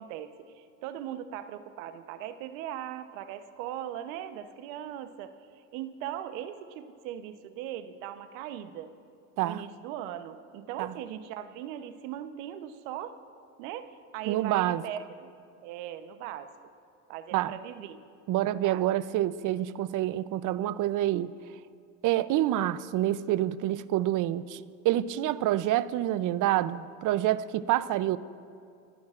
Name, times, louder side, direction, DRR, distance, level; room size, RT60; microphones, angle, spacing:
voice 1, 0.0-8.9 9.4-13.2 13.6-15.3 15.6-16.5 17.1-18.0 18.6-18.9, right 11 dB, 80° right, 10 dB, 1.0 m, -39 dB
voice 2, 14.3-14.8 17.3-17.6 18.3-21.3 22.0-28.2, right 13 dB, 50° right, 16 dB, 0.6 m, -27 dB
29.0 x 15.0 x 2.5 m, 2.5 s
supercardioid pair, 85°, 39 cm